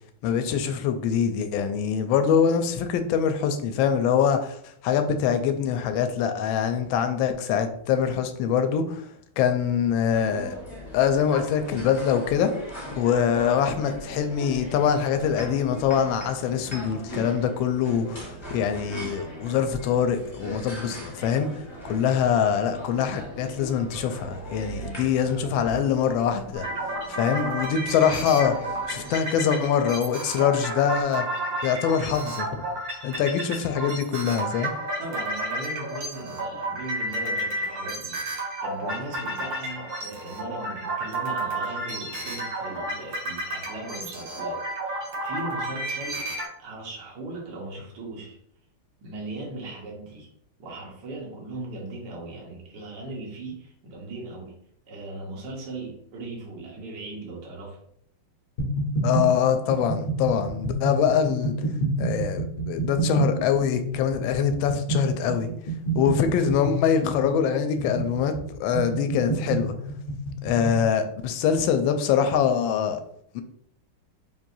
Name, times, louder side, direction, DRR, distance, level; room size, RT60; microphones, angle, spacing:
voice 1, 0.2-9.1 9.4-10.6 10.9-12.5 13.0-26.6 27.1-28.5 28.9-31.2 31.6-32.5 33.0-34.7 59.0-61.6 62.0-65.5 65.9-68.3 68.6-69.7 70.4-73.0 73.3-73.4, left 7 dB, 75° left, 7 dB, 1.2 m, -24 dB
sound 1, 10.1-29.1, equal, 20° left, 0.7 m, -39 dB
sound 2, 26.5-46.5, right 1 dB, 75° right, 2.4 m, -32 dB
voice 2, 35.0-44.6 44.8-46.3 46.6-48.4 49.0-50.3 50.6-54.5 54.9-57.8, right 2 dB, 55° right, -3 dB, 1.6 m, -38 dB
sound 3, 58.6-70.8, right 3 dB, 60° left, 0.5 m, -29 dB
5.5 x 2.6 x 2.6 m, 0.68 s
omnidirectional pair, 2.4 m